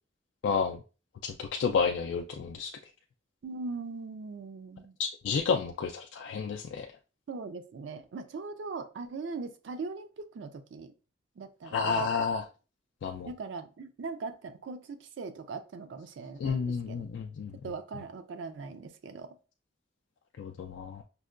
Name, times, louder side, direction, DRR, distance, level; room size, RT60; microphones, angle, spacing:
voice 1, 0.4-0.8 1.2-2.8 5.0-6.9 11.7-12.4 13.0-13.3 16.4-17.7 20.4-21.0, left 5 dB, 75° left, 3 dB, 0.3 m, -31 dB
voice 2, 3.4-4.9 7.3-10.9 11.4-12.1 13.3-17.0 17.6-19.4, right 4 dB, 80° right, 8 dB, 0.4 m, -40 dB
5.3 x 2.1 x 2.4 m, 0.35 s
head